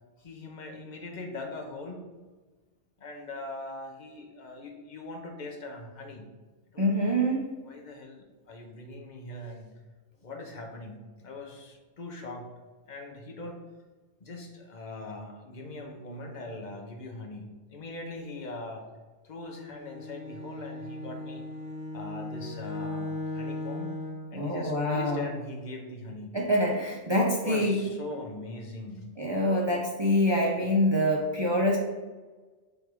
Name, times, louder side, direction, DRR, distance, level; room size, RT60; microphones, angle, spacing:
voice 1, 0.2-2.1 3.0-6.3 6.7-7.0 7.6-9.7 10.2-12.5 12.9-13.6 14.2-18.8 19.2-21.4 21.9-24.0 24.3-26.4 27.4-29.1 30.6-30.7, left 2 dB, 45° left, 2 dB, 1.0 m, -41 dB
voice 2, 6.8-7.5 24.3-25.2 26.3-27.8 29.2-31.8, equal, 25° right, -3 dB, 0.8 m, -25 dB
Bowed string instrument, 19.6-24.3, left 2 dB, 15° left, 1.5 m, -37 dB
6.5 x 3.6 x 4.6 m, 1.3 s
omnidirectional pair, 1.2 m